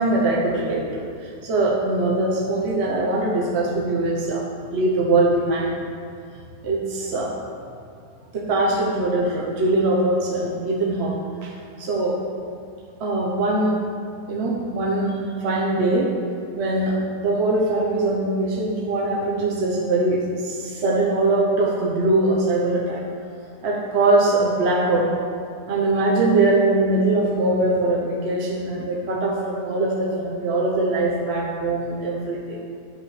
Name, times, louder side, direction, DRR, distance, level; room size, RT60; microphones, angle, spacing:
voice 1, 0.0-5.8 6.6-7.4 8.3-11.1 11.4-11.5 11.8-12.2 13.0-13.8 14.3-16.1 16.6-23.0 23.6-25.1 25.7-32.6, right 2 dB, 50° right, -3 dB, 1.0 m, -22 dB
8.8 x 5.3 x 4.8 m, 2.4 s
omnidirectional pair, 1.8 m